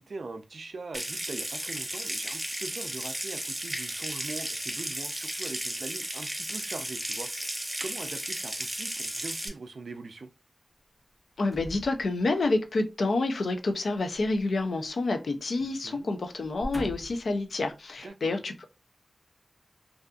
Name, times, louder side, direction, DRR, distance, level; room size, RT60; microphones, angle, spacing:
voice 1, 0.0-10.3 15.6-16.1 18.0-18.3, right 3 dB, 80° right, 0.4 m, -42 dB
Water tap faucet / Sink (filling or washing) / Trickle dribble, 0.9-9.5, right 1 dB, 20° right, 0.6 m, -34 dB
voice 2, 11.4-18.7, left 2 dB, 90° left, 0.4 m, -28 dB
sound 1, 11.5-12.6 14.2-15.3 15.6-15.8 16.4-17.3 18.0-18.1, equal, 25° left, 0.7 m, -42 dB
2.6 x 2.4 x 2.3 m
wide cardioid pair, 85°, 0 cm